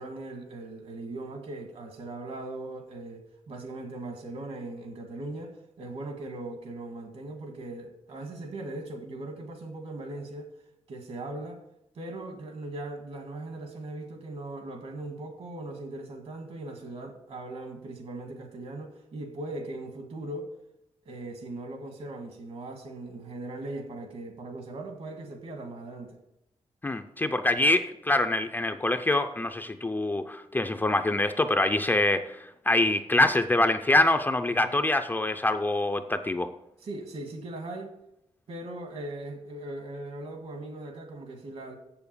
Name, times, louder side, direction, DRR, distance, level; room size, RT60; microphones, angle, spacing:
voice 1, 0.0-10.5 10.9-11.6 12.0-20.5 21.1-26.2 27.4-27.7 34.5-34.7 36.8-37.9 38.5-41.7, right 2 dB, 65° right, 1.8 m, -39 dB
voice 2, 26.8-36.5, left 2 dB, 15° left, 0.4 m, -25 dB
7.3 x 7.0 x 6.8 m
wide cardioid pair, 155°, 11 cm